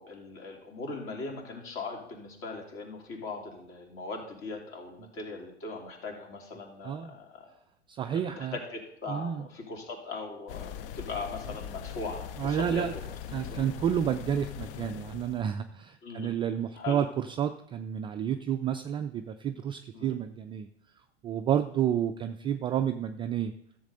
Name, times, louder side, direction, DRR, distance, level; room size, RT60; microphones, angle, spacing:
voice 1, 0.0-7.5 8.1-13.6 14.0-14.1 16.0-16.3 16.8-17.0 19.9-20.2, left 3 dB, 40° left, 0 dB, 3.5 m, -40 dB
voice 2, 6.8-7.2 7.9-8.6 9.1-9.4 12.4-12.9 13.3-20.7 21.2-23.5, right 9 dB, 15° right, 8 dB, 0.3 m, -30 dB
sound 1, 10.5-15.4, left 9 dB, 55° left, 0.7 m, -41 dB
13.5 x 7.5 x 3.9 m, 0.79 s
figure-of-eight pair, 90°, 33 cm